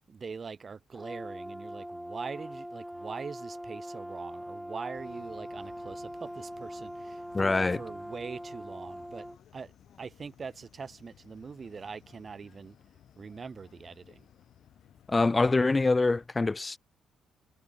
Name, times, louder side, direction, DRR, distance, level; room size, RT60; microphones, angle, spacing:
voice 1, 0.1-9.3 9.5-9.7 10.0-12.7 13.2-14.2, right 5 dB, 40° right, 1.6 m, -42 dB
Brass instrument, 0.9-9.4, equal, 5° right, 4.3 m, -42 dB
sound 1, 4.9-16.3, left 10 dB, 70° left, 4.9 m, -59 dB
voice 2, 7.3-7.8 15.1-16.8, left 3 dB, 20° left, 0.3 m, -25 dB
cardioid pair, 90°, 0 cm